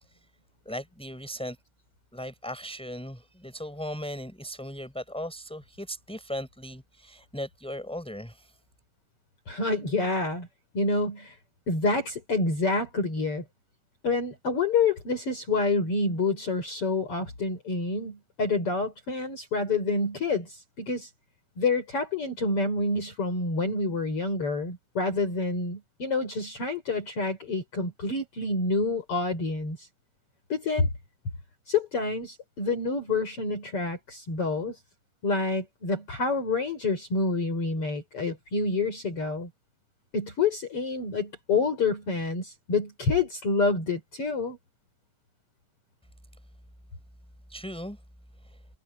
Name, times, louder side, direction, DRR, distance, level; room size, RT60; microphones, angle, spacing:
voice 1, 0.7-1.6 2.1-8.6 47.5-48.0 48.4-48.6, equal, ahead, 7.2 m, -37 dB
voice 2, 9.5-10.5 10.7-11.4 11.7-13.4 14.0-21.1 21.6-29.9 30.5-30.9 31.7-34.8 35.2-39.5 40.1-44.6, left 3 dB, 45° left, 6.0 m, -28 dB
omnidirectional pair, 3.7 m